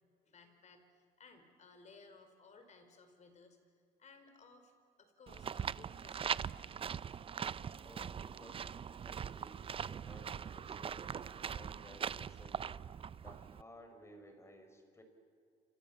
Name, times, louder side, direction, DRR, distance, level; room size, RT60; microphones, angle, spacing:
voice 1, 0.0-4.7 5.0-6.6, left 4 dB, 45° left, 7 dB, 4.9 m, -60 dB
sound 1, 5.3-13.6, right 7 dB, 35° right, 0.6 m, -41 dB
voice 2, 7.8-12.7 13.2-15.0, equal, 15° left, 6 dB, 5.2 m, -57 dB
29.5 x 26.0 x 7.3 m, 2.3 s
cardioid pair, 110°, 17 cm